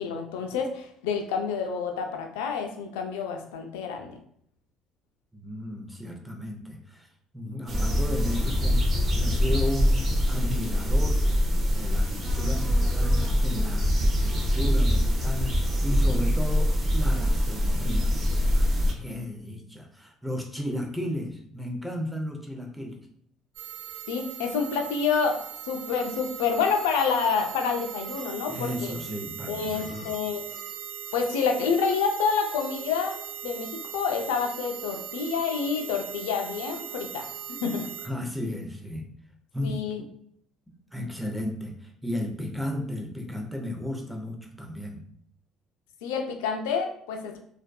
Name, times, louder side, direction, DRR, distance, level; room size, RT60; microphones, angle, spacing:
voice 1, 0.0-4.2 24.1-25.4 25.6-28.9 29.5-30.4 31.1-33.1 33.4-37.9 39.6-40.0 46.0-47.4, left 6 dB, 90° left, 3 dB, 0.4 m, -28 dB
voice 2, 5.3-7.1 7.3-8.8 9.1-11.2 11.7-23.0 28.5-30.1 38.0-39.0 39.5-39.8 40.9-45.0, left 1 dB, ahead, 2 dB, 0.5 m, -34 dB
sound 1, 7.7-18.9, equal, 40° right, 0.7 m, -24 dB
sound 2, 23.5-38.1, right 9 dB, 90° right, 0.7 m, -39 dB
2.5 x 2.1 x 2.2 m, 0.66 s
supercardioid pair, 75°, 0 cm